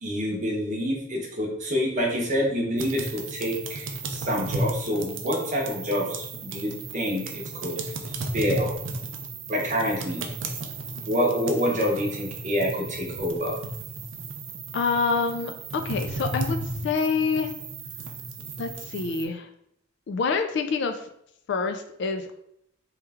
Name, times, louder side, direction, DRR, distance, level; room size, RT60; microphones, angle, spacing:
voice 1, 0.0-7.9 8.3-8.7 9.5-10.2 11.1-13.5, equal, 40° right, -1 dB, 0.8 m, -27 dB
sound 1, 2.8-19.2, right 3 dB, 70° right, 0.4 m, -34 dB
voice 2, 14.7-16.6 16.8-17.5 18.6-19.5 20.1-21.1 21.5-22.2, left 4 dB, 60° left, 7 dB, 0.3 m, -26 dB
3.1 x 2.3 x 3.3 m, 0.74 s
head